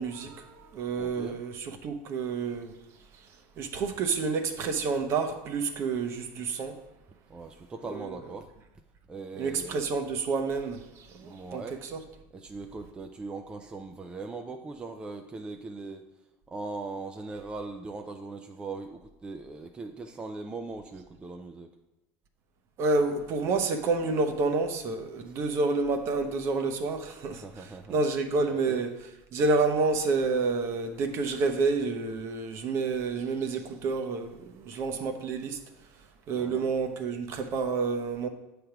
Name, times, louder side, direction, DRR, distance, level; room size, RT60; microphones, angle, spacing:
voice 1, 0.0-2.7 3.6-6.8 7.9-8.1 9.4-12.0 22.8-28.9 29.3-35.6 36.3-38.3, right 4 dB, 45° right, 0.8 m, -29 dB
voice 2, 1.0-1.4 7.3-8.5 9.1-9.9 11.2-11.8 12.3-16.1 16.5-21.7 25.3-25.4 27.3-28.0 28.5-28.8 36.4-36.7, right 3 dB, 15° right, 0.4 m, -40 dB
7.7 x 3.4 x 5.9 m
supercardioid pair, 135°, 6 cm